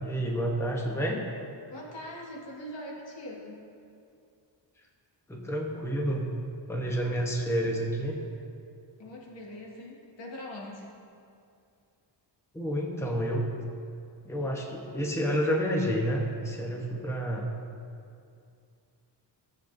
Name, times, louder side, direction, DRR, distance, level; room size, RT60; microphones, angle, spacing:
voice 1, 0.0-1.3 5.3-6.3 6.7-8.2 12.5-13.5 14.2-17.5, equal, 5° left, 0 dB, 0.8 m, -29 dB
voice 2, 1.7-3.6 9.0-11.0, left 1 dB, 85° left, -2 dB, 1.9 m, -42 dB
16.5 x 7.8 x 2.6 m, 2.4 s
wide cardioid pair, 175°, 43 cm